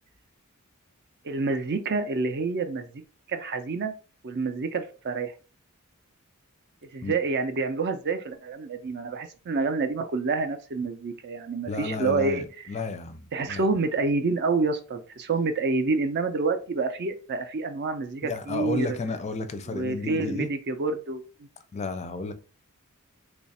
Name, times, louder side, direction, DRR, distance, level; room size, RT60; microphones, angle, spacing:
voice 1, 1.2-3.0 3.3-3.9 4.2-5.3 6.9-12.4 13.3-19.0 19.7-21.2, right 3 dB, 50° right, 0.5 m, -28 dB
voice 2, 11.7-13.7 18.2-20.5 21.7-22.3, left 3 dB, 30° left, 0.4 m, -32 dB
3.1 x 2.4 x 4.1 m
head